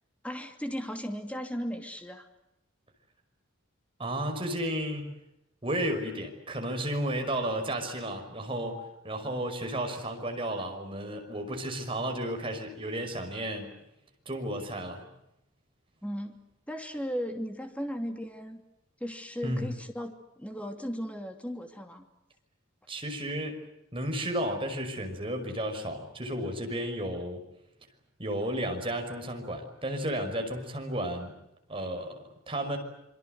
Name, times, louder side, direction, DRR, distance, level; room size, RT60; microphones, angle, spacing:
voice 1, 0.2-2.3 16.0-16.4 16.7-18.6 19.0-22.0, equal, 5° left, 5 dB, 2.8 m, -36 dB
voice 2, 4.0-5.1 5.6-13.7 14.3-15.1 19.4-19.7 22.9-23.6 23.9-27.4 28.2-31.3 31.7-32.2 32.5-32.8, right 1 dB, 25° right, 4 dB, 5.6 m, -33 dB
27.0 x 24.5 x 8.0 m, 0.84 s
head